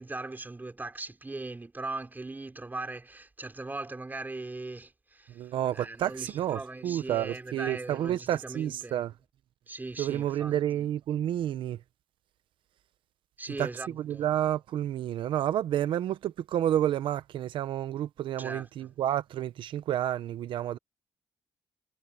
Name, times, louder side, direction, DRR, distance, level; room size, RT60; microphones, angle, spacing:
voice 1, 0.0-9.0 9.7-10.6 13.4-14.3 18.4-18.9, right 2 dB, 20° right, 4.7 m, -40 dB
voice 2, 5.4-9.1 10.0-11.8 13.6-13.7 14.0-20.8, right 11 dB, 80° right, 0.7 m, -30 dB
cardioid pair, 80°, 8 cm